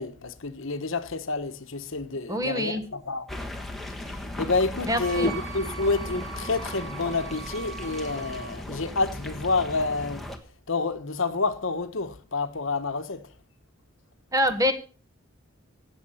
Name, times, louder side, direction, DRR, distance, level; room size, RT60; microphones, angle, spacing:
voice 1, 0.0-3.2 4.4-10.2 10.7-13.2, left 3 dB, 65° left, 1.2 m, -28 dB
voice 2, 2.3-2.8 4.8-5.3 14.3-14.7, equal, 15° right, 1.3 m, -25 dB
sound 1, 3.3-10.4, left 1 dB, ahead, 1.3 m, -37 dB
Wind instrument woodwind instrument, 4.9-8.5, right 7 dB, 70° right, 3.9 m, -40 dB
17.0 x 7.4 x 5.6 m
head